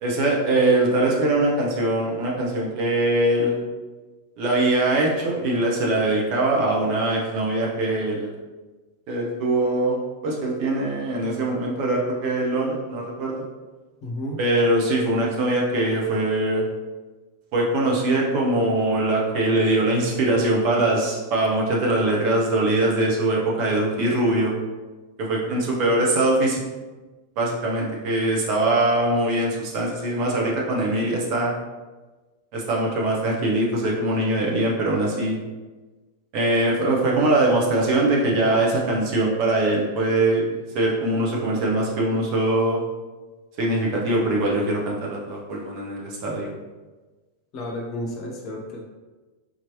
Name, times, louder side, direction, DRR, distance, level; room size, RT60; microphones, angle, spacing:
voice 1, 0.0-3.6 4.4-8.3 9.1-13.4 14.4-16.6 17.5-24.5 25.2-26.6 27.4-31.5 32.5-35.4 36.3-42.8 43.6-46.5, right 2 dB, 45° right, -2 dB, 0.9 m, -22 dB
voice 2, 14.0-14.4 47.5-48.8, left 1 dB, 40° left, 0 dB, 0.8 m, -32 dB
4.0 x 3.0 x 3.0 m, 1.2 s
figure-of-eight pair, 90°, 0 cm